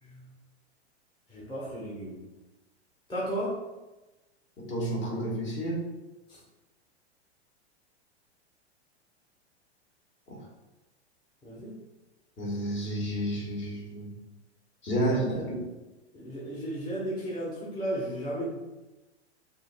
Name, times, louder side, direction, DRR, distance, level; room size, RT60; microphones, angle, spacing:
voice 1, 1.3-2.2 3.1-3.6 6.3-6.4 11.4-11.8 15.0-15.5 16.1-18.5, right 1 dB, 15° left, -6 dB, 1.1 m, -34 dB
voice 2, 4.6-5.8 10.3-10.4 12.4-14.1 14.8-15.2 15.5-15.6, right 1 dB, 35° left, -2 dB, 1.4 m, -31 dB
6.6 x 2.6 x 2.2 m, 1.1 s
hypercardioid pair, 105°, 33 cm